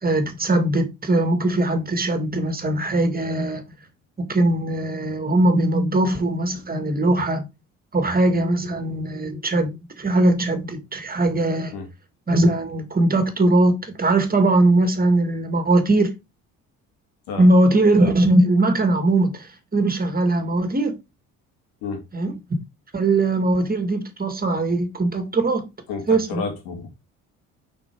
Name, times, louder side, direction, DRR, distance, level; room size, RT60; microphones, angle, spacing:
voice 1, 0.0-3.6 4.2-7.5 7.9-11.7 12.3-16.1 17.4-21.0 22.1-22.3 22.9-25.7 26.1-26.4, right 2 dB, 25° right, 2.1 m, -20 dB
voice 2, 25.9-26.9, left 5 dB, 85° left, 2.2 m, -30 dB
6.0 x 4.6 x 4.6 m
supercardioid pair, 75°, 34 cm